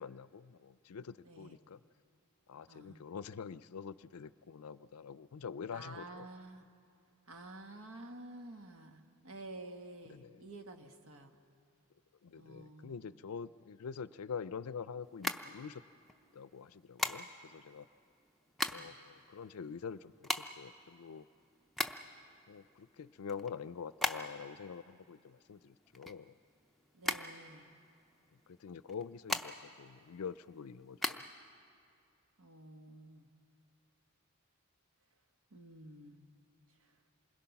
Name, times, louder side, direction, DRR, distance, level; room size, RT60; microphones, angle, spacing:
voice 1, 0.0-1.8 2.5-6.3 10.0-10.4 12.2-15.8 16.3-17.9 18.7-21.3 22.5-26.3 28.5-31.2, left 6 dB, 85° left, 16 dB, 0.5 m, -46 dB
voice 2, 1.2-1.6 2.7-3.0 5.7-6.7 7.3-11.3 12.4-13.1 18.7-19.0 26.9-27.6 32.4-33.3 35.5-36.3 36.8-36.9, right 2 dB, 85° right, 5 dB, 1.5 m, -51 dB
sound 1, 15.1-16.1 17.0-17.6 18.2-19.0 19.3-19.4 19.6-22.2 22.7-24.6 24.8-26.6 27.0-28.0 28.8-29.8 30.2-31.2, left 1 dB, ahead, 0.5 m, -37 dB
27.5 x 21.5 x 5.9 m, 2.5 s
head